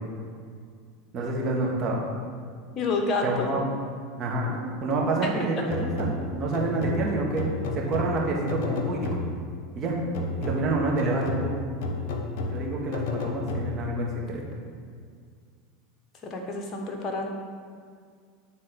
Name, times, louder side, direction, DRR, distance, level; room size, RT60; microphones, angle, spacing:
voice 1, 1.1-2.0 3.2-3.6 4.2-7.5 7.7-9.1 9.8-10.0 10.4-11.7 12.5-14.4, right 2 dB, 40° right, -2 dB, 1.8 m, -28 dB
voice 2, 2.7-3.5 16.3-17.3, left 3 dB, 35° left, 2 dB, 1.5 m, -28 dB
sound 1, 5.7-9.6 10.1-14.0, left 3 dB, 65° left, 1.0 m, -32 dB
8.9 x 4.0 x 5.3 m, 2.1 s
hypercardioid pair, 95°, 0 cm